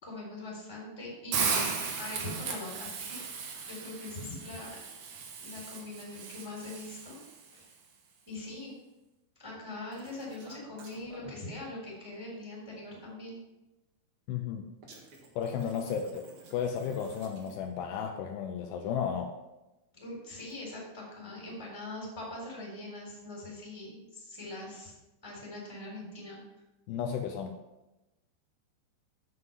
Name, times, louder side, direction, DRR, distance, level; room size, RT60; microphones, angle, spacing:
voice 1, 0.0-4.8 5.4-7.2 7.5-7.7 8.3-8.7 9.4-13.4 19.9-24.9 25.2-26.4, left 2 dB, 5° left, -4 dB, 3.1 m, -42 dB
Hiss, 1.3-7.4, right 5 dB, 65° right, 2.3 m, -36 dB
sound 1, 9.9-11.3 14.8-17.8 20.3-20.6, right 3 dB, 80° right, 1.2 m, -53 dB
voice 2, 14.3-14.7 15.4-19.3 26.9-27.6, left 7 dB, 85° left, 4 dB, 2.7 m, -34 dB
8.1 x 7.7 x 5.4 m, 1.0 s
omnidirectional pair, 5.2 m